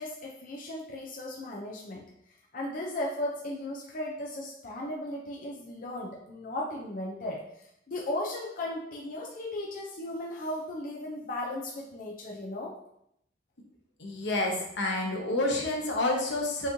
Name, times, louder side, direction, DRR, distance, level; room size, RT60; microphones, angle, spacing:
voice 1, 0.0-2.0 2.5-7.4 7.9-12.7, left 1 dB, 50° left, -2 dB, 0.5 m, -36 dB
voice 2, 14.0-16.7, left 2 dB, 80° left, 0 dB, 0.9 m, -29 dB
5.8 x 3.0 x 2.7 m, 0.77 s
head